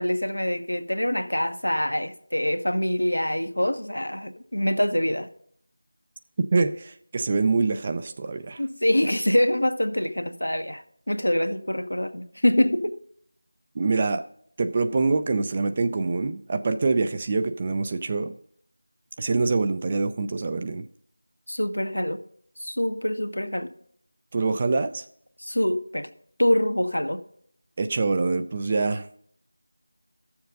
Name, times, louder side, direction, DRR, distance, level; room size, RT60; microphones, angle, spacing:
voice 1, 0.0-5.3 8.6-12.9 21.5-22.2 22.6-23.7 25.4-26.1 26.4-27.2, left 1 dB, 90° left, 1.1 m, -25 dB
voice 2, 6.5-8.6 13.8-14.2 14.6-18.3 19.2-20.8 24.3-25.0 27.8-29.2, right 3 dB, 25° right, 0.4 m, -25 dB
13.0 x 7.1 x 3.8 m
figure-of-eight pair, 170°, 0 cm